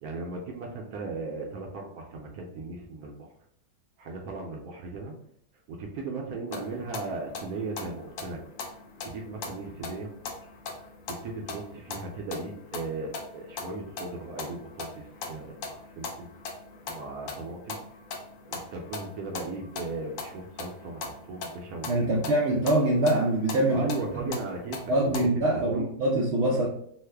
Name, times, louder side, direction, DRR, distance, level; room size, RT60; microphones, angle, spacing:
voice 1, 0.0-3.3 4.0-5.1 5.7-8.4 9.0-10.1 11.1-16.3 16.9-17.8 18.5-22.8 23.7-25.9, right 3 dB, 70° right, 0 dB, 0.9 m, -37 dB
sound 1, 6.5-25.3, left 4 dB, 65° left, 0.8 m, -41 dB
voice 2, 21.9-23.9 24.1-24.3 24.9-26.7, right 1 dB, 90° right, -1 dB, 0.6 m, -24 dB
3.1 x 2.1 x 3.3 m, 0.67 s
omnidirectional pair, 1.8 m